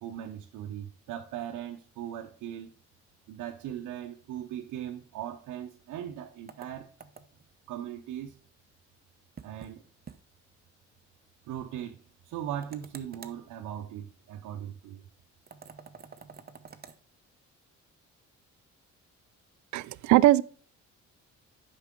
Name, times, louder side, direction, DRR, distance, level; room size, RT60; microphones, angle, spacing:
voice 1, 0.0-2.7 3.3-6.9 7.7-8.4 9.4-9.9 11.5-15.0, right 10 dB, 90° right, 0.8 m, -39 dB
sound 1, 6.5-7.5 9.4-9.8 10.1-10.2 10.5-10.6 12.6-13.4 15.5-17.0, right 6 dB, 30° right, 0.8 m, -48 dB
voice 2, 19.7-20.4, right 15 dB, 70° right, 0.4 m, -20 dB
8.3 x 5.6 x 3.7 m
cardioid pair, 90°, 30 cm